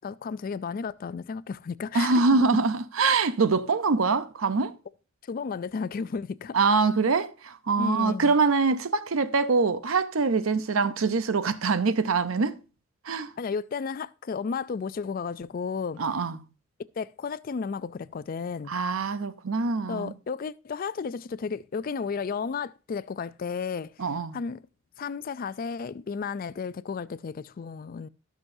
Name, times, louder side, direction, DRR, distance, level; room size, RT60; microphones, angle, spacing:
voice 1, 0.0-2.5 5.2-6.6 7.8-8.3 13.4-16.0 17.0-18.7 19.9-24.0 24.3-24.6 25.0-28.1, left 5 dB, 45° left, 0.3 m, -33 dB
voice 2, 1.9-4.7 6.5-12.6 13.0-13.3 16.0-16.4 18.7-20.1 24.0-24.4, right 4 dB, 85° right, 0.7 m, -24 dB
17.5 x 6.2 x 2.7 m
head